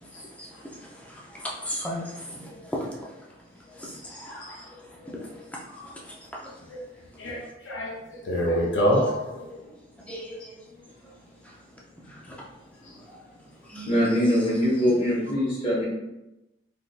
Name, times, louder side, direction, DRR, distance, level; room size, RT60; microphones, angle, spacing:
voice 1, 0.0-3.3 3.7-6.7 6.9-7.0 9.3-9.7 10.0-11.1 11.4-11.6 12.1-12.4 12.9-13.2 13.6-14.0, equal, 5° left, 0.5 m, -39 dB
voice 2, 7.2-8.0 8.2-9.4, equal, 75° left, 0.6 m, -26 dB
voice 3, 13.9-15.9, equal, 30° left, 1.3 m, -23 dB
3.6 x 2.6 x 2.4 m
head